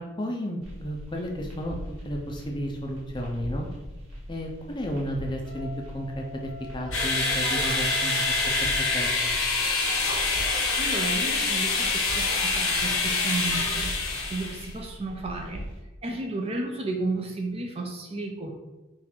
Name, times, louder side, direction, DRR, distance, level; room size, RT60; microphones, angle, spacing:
voice 1, 0.0-1.8 2.0-3.7 4.3-8.4 8.8-9.3, equal, 20° left, 1 dB, 0.5 m, -33 dB
sound 1, 0.6-15.8, equal, 85° right, 1.4 m, -41 dB
Wind instrument woodwind instrument, 5.4-9.4, right 4 dB, 5° left, 0.9 m, -42 dB
sound 2, 6.9-14.7, left 3 dB, 75° left, 0.8 m, -26 dB
voice 2, 10.8-13.9 14.3-15.6 16.0-18.5, right 2 dB, 30° right, 2 dB, 0.5 m, -33 dB
4.1 x 2.5 x 4.3 m, 1.1 s
head